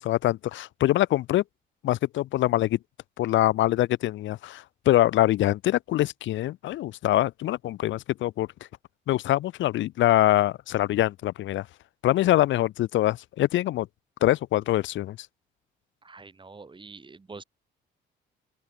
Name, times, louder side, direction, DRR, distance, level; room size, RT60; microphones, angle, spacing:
voice 1, 0.0-1.4 1.8-2.8 3.2-8.5 9.1-11.6 12.0-13.9 14.2-15.2, left 14 dB, 75° left, 0.6 m, -24 dB
voice 2, 16.0-17.4, right 4 dB, 25° right, 2.4 m, -45 dB
open air
cardioid pair, 90°, 20 cm